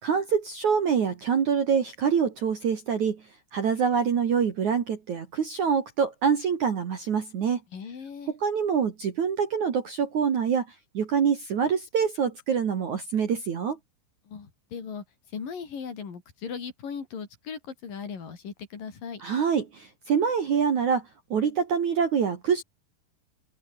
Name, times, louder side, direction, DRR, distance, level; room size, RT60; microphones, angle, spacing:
voice 1, 0.0-3.2 3.5-7.6 8.3-10.7 10.9-13.8 19.2-22.6, right 6 dB, 50° right, 2.9 m, -25 dB
voice 2, 7.7-8.3 14.3-15.0 15.3-19.2, left 6 dB, 50° left, 5.4 m, -38 dB
open air
omnidirectional pair, 5.5 m